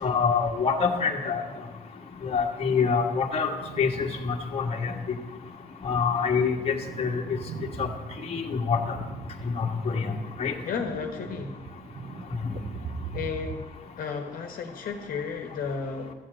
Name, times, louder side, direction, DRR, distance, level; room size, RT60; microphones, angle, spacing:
voice 1, 0.0-1.4 2.2-4.9 5.8-7.2 7.8-7.9 8.3-9.0 9.4-10.1 10.4-10.5, left 5 dB, 35° left, 1 dB, 1.5 m, -26 dB
sound 1, 3.6-4.5 4.9-5.0 5.7-13.6, right 5 dB, 40° right, 0.8 m, -41 dB
voice 2, 10.6-11.6 13.1-13.7 14.0-16.1, left 5 dB, 55° left, 4 dB, 1.4 m, -33 dB
13.5 x 7.6 x 7.6 m, 1.3 s
cardioid pair, 110°, 17 cm